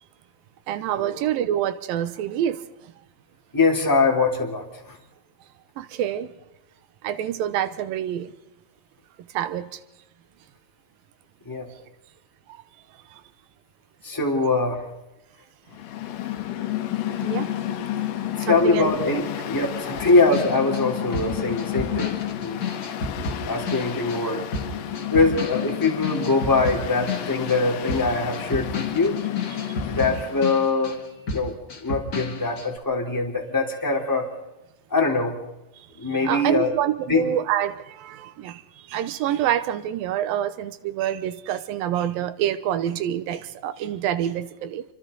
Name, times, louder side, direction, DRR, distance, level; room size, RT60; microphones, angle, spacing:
voice 1, 0.7-2.9 5.8-6.3 7.0-8.3 9.3-9.8 11.7-11.8 12.5-12.6 13.1-13.2 17.2-17.5 18.4-18.9 29.5-30.2 35.8-44.8, right 11 dB, 90° right, 2.7 m, -27 dB
voice 2, 3.5-5.0 11.4-11.7 14.0-14.9 18.4-22.6 23.5-24.4 25.1-29.2 29.9-31.0 31.3-31.5 31.8-34.3 34.9-35.4 36.0-36.7 37.1-37.2, left 3 dB, 5° left, 3.0 m, -23 dB
Mechanical fan, 15.7-30.5, left 11 dB, 70° left, 2.6 m, -31 dB
sound 1, 20.0-24.3 24.5-31.0 31.3-32.7, left 3 dB, 35° left, 1.6 m, -32 dB
29.0 x 25.0 x 4.0 m
omnidirectional pair, 4.0 m